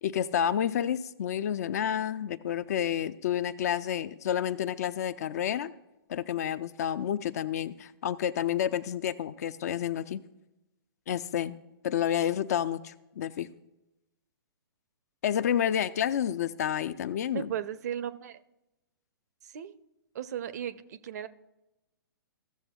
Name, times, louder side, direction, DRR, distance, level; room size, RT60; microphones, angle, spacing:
voice 1, 0.0-5.7 6.1-10.2 11.1-11.6 11.8-13.5 15.2-17.5, left 9 dB, 45° left, 15 dB, 0.4 m, -30 dB
voice 2, 17.3-18.4 19.5-19.7 20.1-21.3, right 9 dB, 45° right, 14 dB, 0.5 m, -36 dB
15.0 x 7.2 x 2.3 m, 0.96 s
figure-of-eight pair, 120°, 12 cm